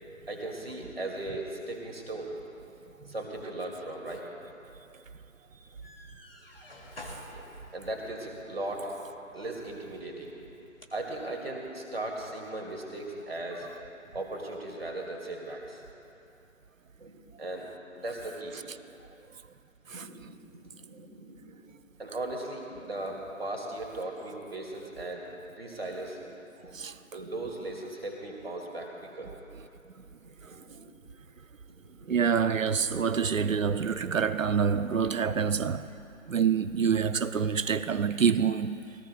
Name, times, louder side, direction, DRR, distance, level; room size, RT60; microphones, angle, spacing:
voice 1, 0.3-2.3 3.1-4.3 7.3-7.4 7.7-8.9 9.3-10.3 10.9-13.7 14.1-15.8 17.0-18.6 19.9-20.4 20.8-21.6 22.0-25.3 25.6-26.4 27.1-29.3 30.2-30.3 30.6-30.9 32.0-32.2 36.2-36.4, right 2 dB, 45° right, 2.4 m, -38 dB
sound 1, 5.6-11.1, left 1 dB, 45° left, 2.1 m, -51 dB
voice 2, 32.1-35.9 36.3-38.8, right 6 dB, 70° right, 0.6 m, -27 dB
23.5 x 18.0 x 2.3 m
figure-of-eight pair, 165°, 41 cm